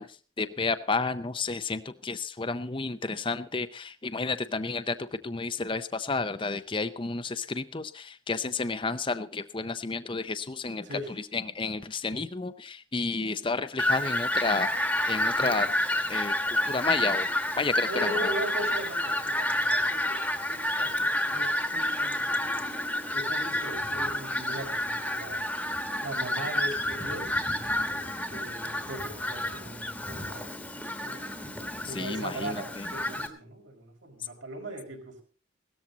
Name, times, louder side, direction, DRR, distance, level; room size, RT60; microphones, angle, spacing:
voice 1, 0.0-15.7 16.1-17.3 17.6-18.3 31.8-32.9, left 3 dB, 25° left, 10 dB, 0.6 m, -31 dB
Fowl, 13.8-33.3, left 1 dB, 5° left, 1.3 m, -29 dB
voice 2, 15.2-15.6 17.8-20.2 20.5-22.8 23.1-25.7 26.0-27.4 27.9-30.5 31.0-31.2 31.9-35.2, right 1 dB, 70° right, 1 dB, 5.2 m, -39 dB
17.0 x 13.5 x 4.0 m, 0.40 s
head